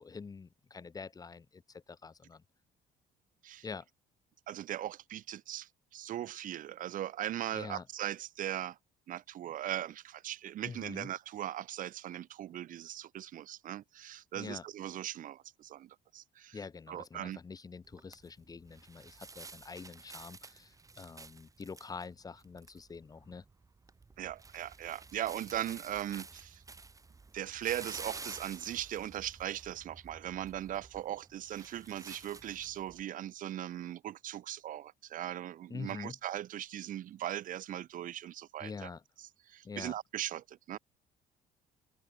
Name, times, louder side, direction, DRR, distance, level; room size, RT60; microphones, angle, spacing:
voice 1, 0.0-2.4 3.6-3.8 7.5-7.9 10.6-11.1 14.4-14.6 16.5-23.4 35.7-36.2 38.6-39.0 39.6-40.0, left 5 dB, 20° left, 0.7 m, -45 dB
voice 2, 4.5-8.8 9.1-16.6 16.9-17.4 24.2-26.6 27.3-38.9 39.2-40.8, right 12 dB, 50° right, 0.6 m, -39 dB
sound 1, 17.8-33.0, right 4 dB, 20° right, 1.3 m, -51 dB
cardioid pair, 110°, 17 cm